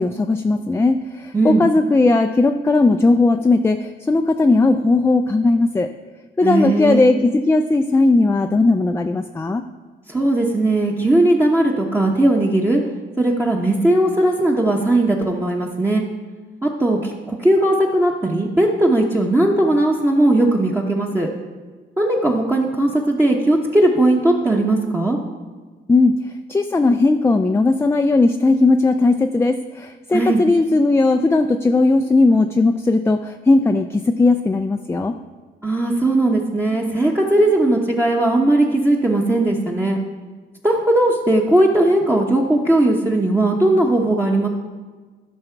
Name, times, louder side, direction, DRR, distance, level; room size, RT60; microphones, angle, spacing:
voice 1, 0.0-5.9 6.4-9.6 25.9-26.2 26.5-35.2, left 3 dB, 10° left, 6 dB, 0.4 m, -17 dB
voice 2, 6.4-7.1 10.1-12.8 13.2-16.0 16.6-21.3 22.0-25.2 30.1-30.4 35.6-40.0 40.6-44.5, right 1 dB, 10° right, -2 dB, 0.9 m, -18 dB
13.0 x 5.6 x 4.5 m, 1.4 s
cardioid pair, 90°, 20 cm